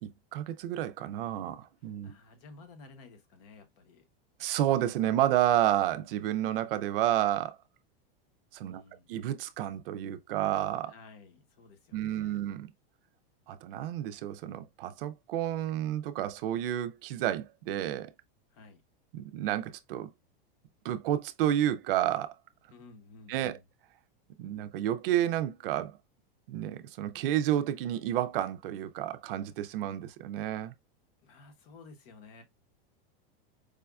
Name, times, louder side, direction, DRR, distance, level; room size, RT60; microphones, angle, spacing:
voice 1, 0.0-2.1 4.4-7.6 8.5-8.8 9.1-10.9 11.9-12.7 13.5-18.1 19.1-20.1 20.8-22.3 23.3-23.6 24.4-25.9 26.5-30.7, right 12 dB, 65° right, 0.5 m, -30 dB
voice 2, 2.0-4.0 8.6-9.1 10.9-12.4 18.5-18.8 22.7-23.6 31.2-32.4, left 4 dB, 40° left, 0.9 m, -54 dB
4.9 x 2.2 x 2.3 m
supercardioid pair, 170°, 30 cm